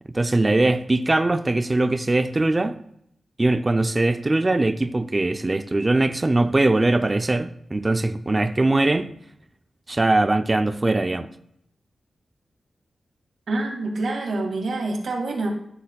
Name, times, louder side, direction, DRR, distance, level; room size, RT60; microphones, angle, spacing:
voice 1, 0.1-2.7 3.4-9.1 9.9-11.3, right 2 dB, 25° right, 0.4 m, -21 dB
voice 2, 13.5-15.5, right 2 dB, 75° right, 2.0 m, -26 dB
13.5 x 6.8 x 2.3 m
wide cardioid pair, 120°, 0 cm